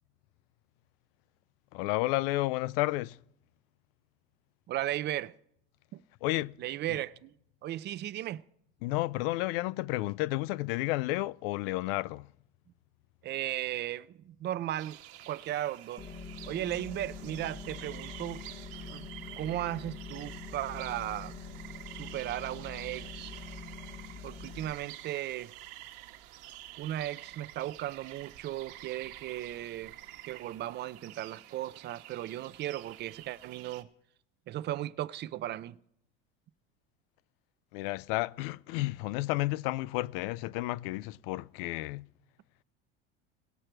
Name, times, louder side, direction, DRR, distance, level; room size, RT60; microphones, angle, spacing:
voice 1, 1.7-3.2 6.2-6.6 6.9-7.0 8.8-12.3 37.7-42.1, left 19 dB, 70° left, 0.4 m, -31 dB
voice 2, 4.7-5.3 5.9-6.0 6.6-7.3 7.6-8.4 13.2-15.0 15.3-16.1 16.5-18.5 18.8-19.1 19.4-21.3 21.9-23.3 24.2-25.5 26.8-29.9 30.3-33.9 34.5-35.8, right 13 dB, 35° right, 0.4 m, -36 dB
sound 1, 14.8-33.8, right 13 dB, 70° right, 1.2 m, -49 dB
sound 2, 16.0-24.7, left 5 dB, 15° left, 0.9 m, -45 dB
19.0 x 6.4 x 4.5 m
supercardioid pair, 100°, 29 cm